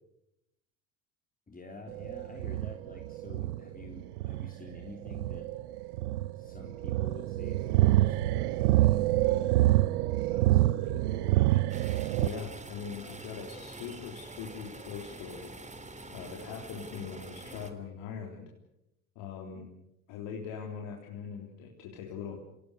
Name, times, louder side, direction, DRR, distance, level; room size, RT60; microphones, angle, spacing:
voice 1, 1.5-5.5 6.2-9.5 10.3-11.9, left 2 dB, 20° left, 1 dB, 3.9 m, -49 dB
sound 1, 1.9-12.3, right 16 dB, 80° right, 0.9 m, -27 dB
sound 2, 11.7-17.7, right 2 dB, 15° right, 3.1 m, -46 dB
voice 2, 12.2-15.5 16.1-18.5 19.2-19.7 20.1-22.4, left 6 dB, 70° left, 0 dB, 3.7 m, -41 dB
26.5 x 18.0 x 8.2 m, 0.86 s
hypercardioid pair, 70°, 44 cm